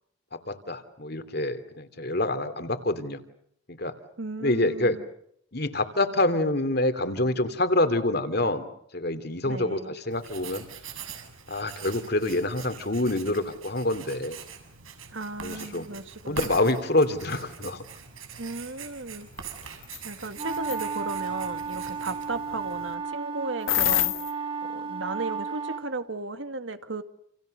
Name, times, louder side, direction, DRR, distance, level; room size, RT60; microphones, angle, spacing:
voice 1, 0.5-3.2 3.7-3.9 4.4-5.0 5.5-8.7 8.9-10.6 11.5-14.4 15.4-15.9 16.3-17.8, left 1 dB, 50° left, 10 dB, 2.9 m, -26 dB
voice 2, 4.2-5.0 9.5-9.9 15.1-16.5 18.4-19.3 20.0-24.1 24.7-27.0, right 2 dB, 70° right, 9 dB, 2.2 m, -35 dB
Writing, 10.1-22.9, right 6 dB, 85° right, 6.9 m, -43 dB
sound 1, 19.8-20.0 20.5-20.8 23.7-24.3, left 14 dB, 70° left, 1.4 m, -24 dB
sound 2, 20.4-25.9, right 5 dB, 25° right, 3.9 m, -33 dB
29.5 x 29.0 x 6.7 m, 0.71 s
head